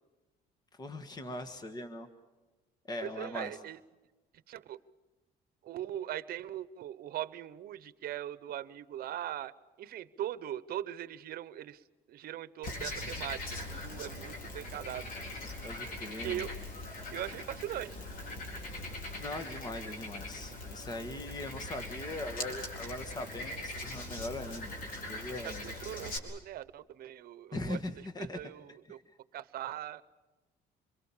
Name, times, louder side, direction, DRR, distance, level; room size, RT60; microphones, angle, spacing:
voice 1, 0.8-2.1 2.9-3.5 15.6-16.5 19.2-25.6 26.0-26.1 27.5-28.4, left 2 dB, 25° left, 7 dB, 1.6 m, -40 dB
voice 2, 3.0-3.8 4.5-4.8 5.6-9.5 9.8-15.1 16.2-16.5 17.1-18.0 25.4-29.0 29.3-30.0, right 12 dB, 60° right, 16 dB, 0.9 m, -40 dB
Frog, 12.6-26.2, left 2 dB, 55° left, 4.5 m, -41 dB
26.5 x 22.5 x 7.3 m, 1.2 s
cardioid pair, 110°, 17 cm